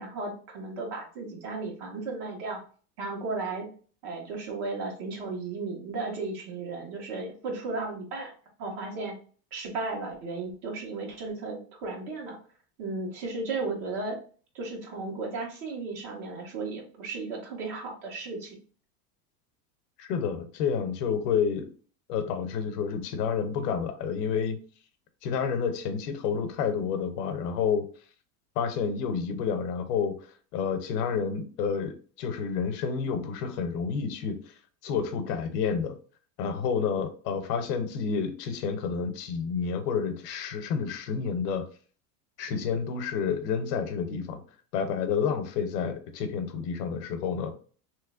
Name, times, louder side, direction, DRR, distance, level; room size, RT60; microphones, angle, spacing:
voice 1, 0.0-2.6 3.0-3.7 4.0-8.3 8.6-9.1 9.5-12.4 12.8-14.2 14.5-18.6, right 3 dB, 55° right, 0 dB, 1.5 m, -35 dB
voice 2, 20.0-21.7 22.1-24.6 25.2-27.9 28.6-30.2 30.5-34.5 34.8-36.0 36.4-41.6 42.4-44.4 44.7-47.5, left 6 dB, 80° left, 9 dB, 0.8 m, -29 dB
3.2 x 3.0 x 2.4 m, 0.41 s
supercardioid pair, 120°, 47 cm